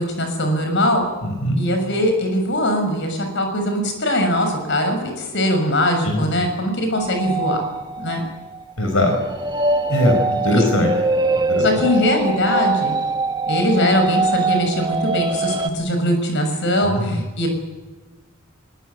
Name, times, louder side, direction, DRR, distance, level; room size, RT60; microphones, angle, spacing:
voice 1, 0.0-1.1 1.6-7.7 8.0-8.2 11.6-12.9 13.5-17.5, equal, 60° left, 5 dB, 6.6 m, -21 dB
voice 2, 1.2-1.6 6.0-6.5 8.8-9.1 9.9-10.2 10.4-10.9 11.5-11.6 16.8-17.2, left 1 dB, 80° left, 4 dB, 5.7 m, -20 dB
sound 1, 7.0-15.7, right 2 dB, 20° right, 1.5 m, -23 dB
21.5 x 20.5 x 9.6 m, 1.2 s
head